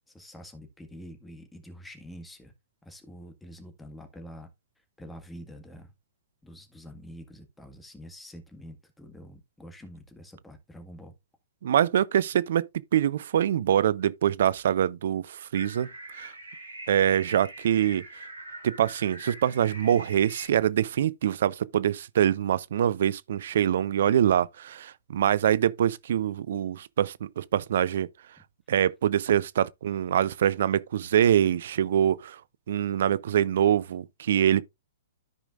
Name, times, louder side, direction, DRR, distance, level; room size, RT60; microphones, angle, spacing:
voice 1, 0.1-2.5 2.8-4.5 5.0-5.9 6.4-11.1, equal, 5° left, 1.7 m, -46 dB
voice 2, 11.6-15.9 16.2-16.3 16.9-18.0 18.6-28.1 28.7-32.4 32.7-34.6, right 10 dB, 60° right, 0.5 m, -24 dB
sound 1, 15.5-20.4, right 2 dB, 90° right, 5.0 m, -43 dB
13.5 x 5.0 x 2.5 m
hypercardioid pair, 115°, 0 cm